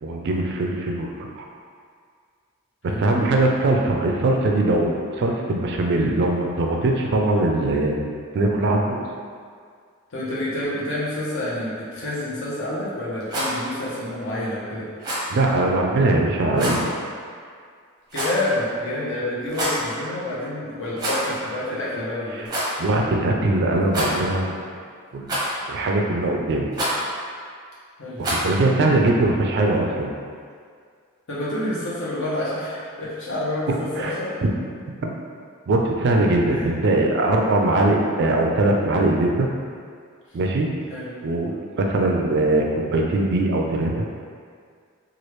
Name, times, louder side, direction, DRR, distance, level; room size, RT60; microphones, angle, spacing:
voice 1, 0.0-1.4 2.8-8.0 8.3-9.0 15.3-16.9 22.8-24.7 25.1-25.3 25.7-26.7 28.2-30.1 34.0-34.1 35.7-39.5 40.3-40.7 41.2-44.1, right 2 dB, 50° right, 0 dB, 0.3 m, -21 dB
voice 2, 10.1-14.9 18.1-22.5 28.0-28.2 28.8-29.3 31.3-34.3 36.5-36.7 40.9-41.1, left 1 dB, 60° left, -8 dB, 0.9 m, -28 dB
Rattle, 13.2-13.6 15.0-15.3 16.5-16.8 18.1-18.5 19.4-19.8 20.9-21.4 21.6-21.7 22.4-22.7 23.9-24.4 25.3-25.7 26.7-27.0 28.2-28.5, equal, 20° right, 0.6 m, -26 dB
3.1 x 2.3 x 3.1 m, 2.1 s
head